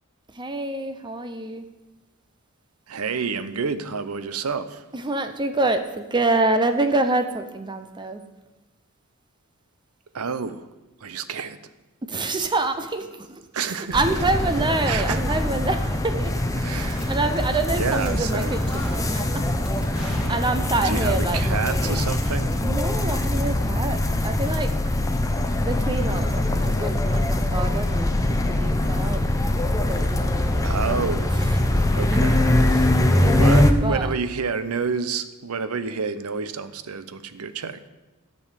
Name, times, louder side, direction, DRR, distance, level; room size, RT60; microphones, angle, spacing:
voice 1, 0.3-1.6 4.9-8.3 12.0-16.3 16.7-19.5 20.0-22.1 22.6-24.7 25.6-28.1 28.5-29.2 29.9-30.9 31.4-31.9 32.7-32.9 33.2-34.1, right 2 dB, 20° right, 0.6 m, -27 dB
voice 2, 2.9-4.9 10.1-10.7 11.0-11.6 13.5-14.0 14.9-15.4 16.6-17.1 17.8-18.9 20.8-22.6 30.6-31.3 31.9-32.5 33.4-37.8, right 5 dB, 85° right, 0.7 m, -29 dB
sound 1, 13.9-33.7, left 1 dB, 15° left, 0.8 m, -22 dB
sound 2, 16.9-17.1 17.3-17.6 17.9-18.1 18.4-19.2 19.7-21.0, equal, 5° right, 2.5 m, -39 dB
12.5 x 5.4 x 8.3 m
head